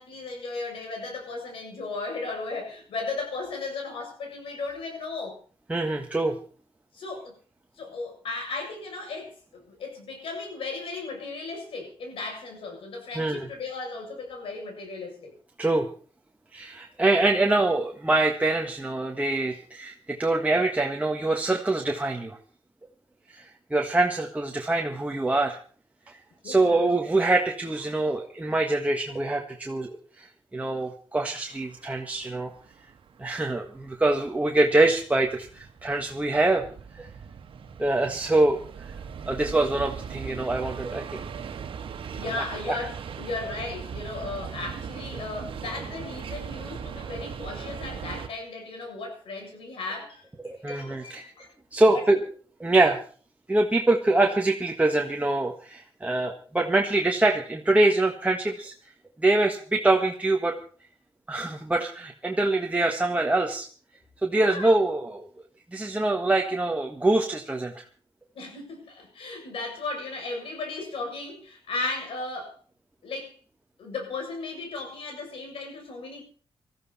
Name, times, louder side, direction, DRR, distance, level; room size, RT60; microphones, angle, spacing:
voice 1, 0.0-5.4 6.9-7.4 7.8-15.3 26.4-26.8 42.2-51.5 51.9-52.1 64.3-64.9 68.3-72.5 73.0-73.4 73.8-76.2, left 3 dB, 80° left, 2 dB, 7.5 m, -36 dB
voice 2, 5.7-6.3 13.1-13.5 15.6-15.9 16.5-22.4 23.3-25.6 26.1-26.2 26.4-30.3 30.5-32.5 33.2-36.6 37.0-37.1 37.8-38.9 39.3-41.2 42.7-42.9 50.4-51.2 51.7-52.2 52.6-53.0 53.5-58.7 59.2-60.6 61.3-63.7 64.2-65.3 65.7-67.8, right 2 dB, 15° right, 1 dB, 1.6 m, -24 dB
sound 1, 31.5-48.3, right 7 dB, 75° right, 1.7 m, -39 dB
20.0 x 14.0 x 4.3 m, 0.43 s
cardioid pair, 95°, 9 cm